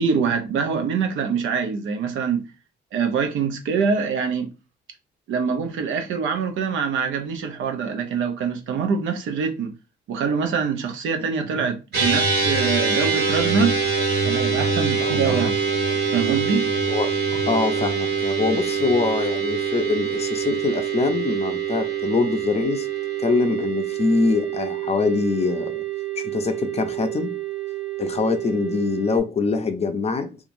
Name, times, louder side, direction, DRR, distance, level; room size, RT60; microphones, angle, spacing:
voice 1, 0.0-2.5 2.9-4.5 5.3-9.8 10.1-13.8 14.2-15.6 16.1-16.7, right 6 dB, 75° right, 0.7 m, -24 dB
sound 1, 11.9-29.2, right 6 dB, 55° right, 1.6 m, -25 dB
voice 2, 17.5-22.9 23.2-25.8 26.2-27.4 28.0-30.4, left 4 dB, 30° left, 0.5 m, -24 dB
2.9 x 2.3 x 2.5 m
cardioid pair, 90°, 20 cm